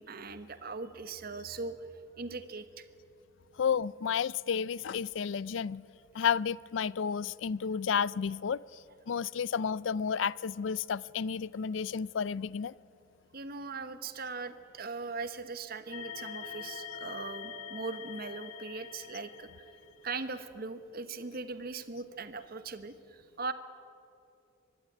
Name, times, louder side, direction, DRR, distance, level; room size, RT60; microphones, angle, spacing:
voice 1, 0.0-2.8 13.3-19.7 20.0-23.5, right 4 dB, 50° right, 1.1 m, -40 dB
voice 2, 3.6-5.8 6.1-12.7, left 7 dB, 65° left, 0.4 m, -32 dB
sound 1, 15.9-20.2, left 6 dB, 85° left, 1.9 m, -44 dB
24.5 x 11.5 x 10.0 m
head